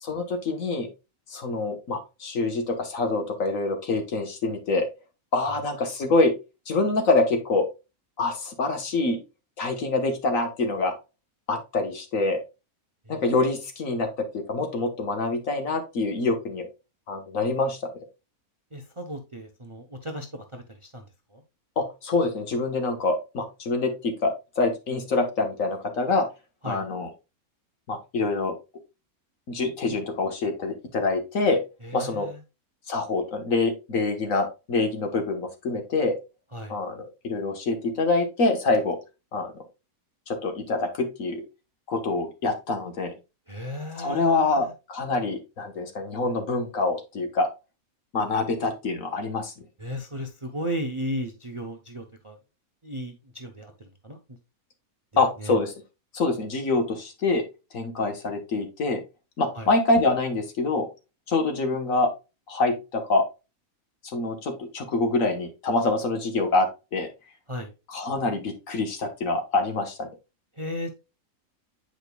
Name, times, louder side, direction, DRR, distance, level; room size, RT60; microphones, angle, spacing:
voice 1, 0.0-0.9 1.3-4.9 5.3-6.3 6.7-7.7 8.2-9.2 9.6-10.9 11.5-12.4 13.1-14.1 14.3-16.7 17.1-17.8 21.8-26.3 26.7-27.1 27.9-28.6 29.5-31.6 31.9-32.3 32.9-36.1 36.7-39.0 39.3-39.5 40.3-41.4 41.9-43.1 44.0-47.5 48.1-49.5 55.2-55.7 56.1-57.4 57.7-59.0 59.4-60.9 61.3-62.1 62.5-63.2 64.0-67.1 67.9-70.1, left 3 dB, 60° left, 5 dB, 1.7 m, -25 dB
voice 2, 18.7-21.0 21.3-21.4 26.6-26.8 31.8-32.4 36.5-36.8 43.5-44.7 49.8-52.4 52.8-54.2 55.4-55.6 59.5-59.7 67.5-67.7 70.6-71.0, equal, 25° right, 5 dB, 0.7 m, -35 dB
8.7 x 5.1 x 2.3 m, 0.27 s
omnidirectional pair, 1.6 m